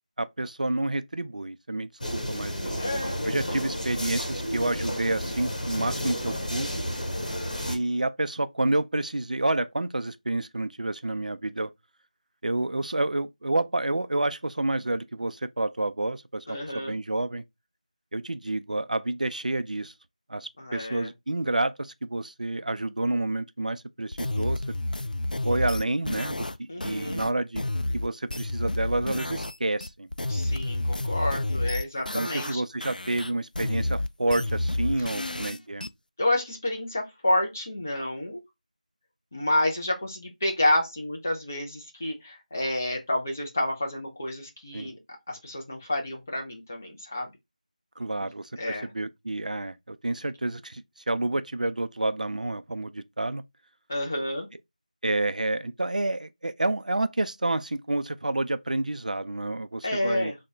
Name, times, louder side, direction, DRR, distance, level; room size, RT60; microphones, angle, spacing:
voice 1, 0.2-2.8 3.2-6.8 7.7-11.7 12.4-17.4 18.1-19.9 20.3-24.6 25.4-27.6 27.9-30.1 32.1-35.9 44.7-44.9 48.0-53.4 55.0-60.3, right 2 dB, 65° right, 0.3 m, -29 dB
sound 1, 2.0-7.7, equal, 65° left, 1.2 m, -31 dB
voice 2, 2.8-3.2 16.5-17.0 20.6-21.1 26.7-27.3 30.3-32.6 35.1-35.6 36.2-38.4 39.3-45.0 45.3-47.3 48.6-48.9 53.9-54.5 59.8-60.4, left 1 dB, 20° left, 0.4 m, -29 dB
sound 2, 24.1-29.6 29.8-32.6 32.8-35.9, left 1 dB, 85° left, 0.3 m, -30 dB
3.1 x 2.1 x 3.6 m
figure-of-eight pair, 170°, 4 cm